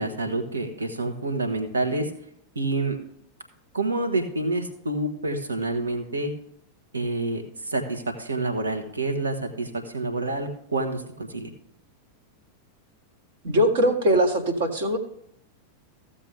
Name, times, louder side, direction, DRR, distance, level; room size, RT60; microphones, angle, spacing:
voice 1, 0.0-2.1 2.5-3.0 3.7-6.3 6.9-11.5, right 2 dB, 75° right, 5 dB, 1.5 m, -28 dB
voice 2, 13.4-15.0, equal, 60° right, 4 dB, 1.7 m, -21 dB
15.0 x 7.3 x 3.5 m, 0.73 s
figure-of-eight pair, 90°, 0 cm